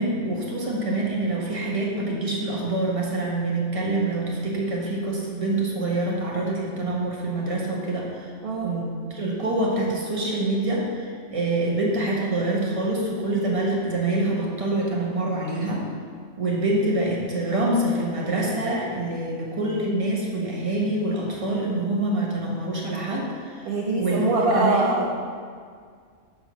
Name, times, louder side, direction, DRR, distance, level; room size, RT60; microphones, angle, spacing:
voice 1, 0.0-8.3 8.6-15.8 16.4-23.7 24.0-24.9, right 2 dB, 25° right, -3 dB, 1.3 m, -26 dB
voice 2, 23.6-25.2, right 2 dB, 45° right, -3 dB, 1.0 m, -23 dB
10.0 x 3.8 x 6.2 m, 2.1 s
omnidirectional pair, 1.4 m